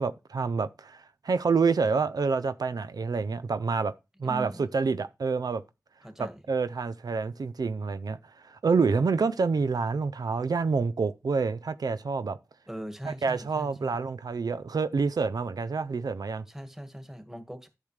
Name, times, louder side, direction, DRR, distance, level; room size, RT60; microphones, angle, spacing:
voice 1, 0.0-3.9 4.2-5.6 6.2-8.2 8.4-12.4 13.0-16.4, right 4 dB, 90° right, 0.4 m, -27 dB
voice 2, 4.2-4.7 6.0-6.4 12.7-14.0 16.5-17.7, equal, 5° right, 1.7 m, -40 dB
10.5 x 6.6 x 3.2 m
wide cardioid pair, 40°, 6 cm